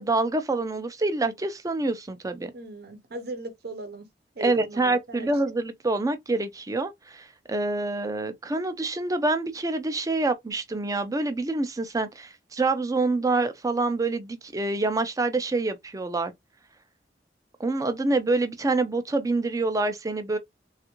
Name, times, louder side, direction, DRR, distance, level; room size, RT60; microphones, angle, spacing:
voice 1, 0.0-2.5 4.4-16.3 17.6-20.4, right 2 dB, 20° right, 0.5 m, -26 dB
voice 2, 2.5-4.1 4.3-5.3, right 2 dB, 60° right, 0.8 m, -38 dB
3.4 x 2.4 x 2.9 m
head